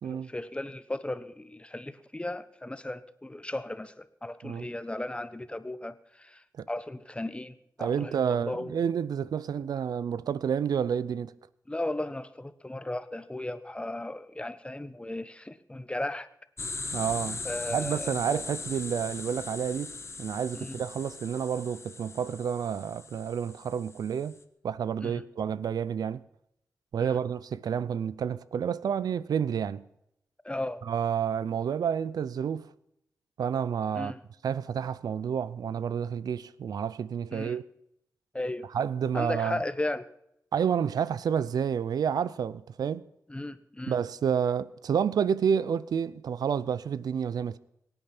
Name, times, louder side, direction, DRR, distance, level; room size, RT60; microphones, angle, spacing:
voice 1, 0.0-8.7 11.7-16.3 17.4-18.4 20.5-20.8 25.0-25.2 27.0-27.2 30.4-30.8 33.9-34.2 37.3-37.6 38.3-38.6 39.1-40.0 43.3-44.0, left 1 dB, 15° left, 1.1 m, -36 dB
voice 2, 7.8-11.3 16.9-17.4 17.7-24.4 24.6-26.2 26.9-29.9 30.9-32.7 33.4-34.1 34.4-37.6 38.7-39.6 40.5-43.0 43.9-47.6, right 7 dB, 90° right, 0.5 m, -29 dB
sound 1, 16.6-24.3, left 3 dB, 45° left, 1.4 m, -39 dB
23.0 x 8.9 x 6.0 m
cardioid pair, 60°, 6 cm